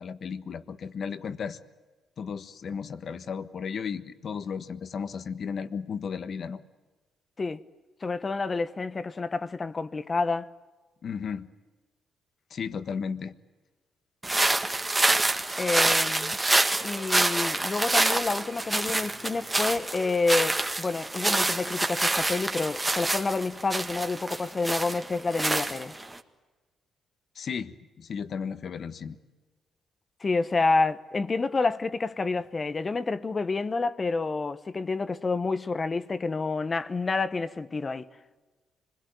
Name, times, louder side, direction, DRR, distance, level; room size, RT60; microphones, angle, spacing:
voice 1, 0.0-1.6 2.2-6.6 11.0-11.5 12.5-13.3 27.3-29.2, left 6 dB, 55° left, 1.4 m, -34 dB
voice 2, 8.0-10.5 15.6-16.4 16.8-25.9 30.2-38.1, left 3 dB, 30° left, 1.1 m, -28 dB
sound 1, 14.2-26.2, right 2 dB, 15° right, 1.8 m, -27 dB
26.0 x 21.5 x 9.2 m
cardioid pair, 90°, 0 cm